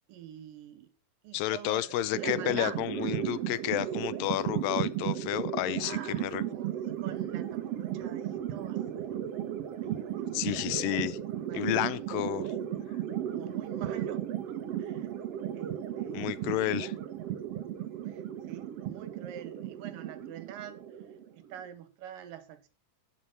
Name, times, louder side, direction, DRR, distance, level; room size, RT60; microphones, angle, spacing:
voice 1, 0.1-0.9 1.2-3.3 5.7-8.8 9.1-9.3 9.8-10.6 11.4-12.6 13.1-15.1 15.5-16.4 18.1-20.9 21.3-22.7, right 10 dB, 85° right, 2.8 m, -46 dB
voice 2, 1.3-6.4 10.3-11.2 11.5-12.5 16.1-16.9, left 15 dB, 85° left, 2.3 m, -31 dB
sound 1, 2.1-21.6, right 11 dB, 65° right, 1.6 m, -35 dB
8.9 x 7.8 x 5.4 m
omnidirectional pair, 4.0 m